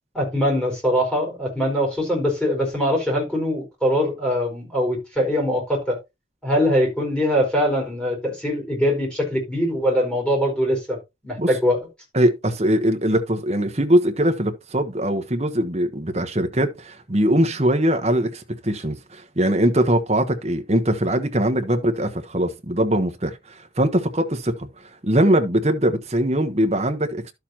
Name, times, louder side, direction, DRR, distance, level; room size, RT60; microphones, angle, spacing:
voice 1, 0.1-6.0 6.4-11.0 11.2-11.8, equal, 5° left, 4.5 m, -22 dB
voice 2, 12.1-24.7 25.0-27.2, right 1 dB, 35° right, 1.1 m, -21 dB
12.0 x 6.7 x 2.9 m
head